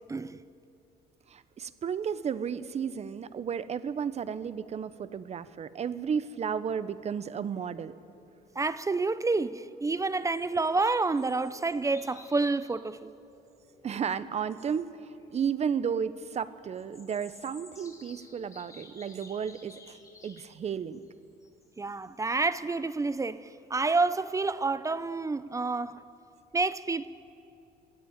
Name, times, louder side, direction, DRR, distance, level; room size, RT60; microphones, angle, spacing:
voice 1, 1.3-7.9 13.8-14.9 15.3-20.0 20.2-21.0, right 7 dB, 40° right, 1.0 m, -33 dB
sound 1, 7.5-8.8 9.2-9.4 9.7-14.0 14.3-15.7 16.7-20.6 20.9-22.4 23.1-23.2 23.6-23.8 24.1-24.2, left 3 dB, 20° left, 3.6 m, -55 dB
voice 2, 8.6-13.1 21.8-26.0 26.5-27.1, right 3 dB, 20° right, 0.6 m, -29 dB
24.0 x 17.0 x 9.0 m
cardioid pair, 110°, 17 cm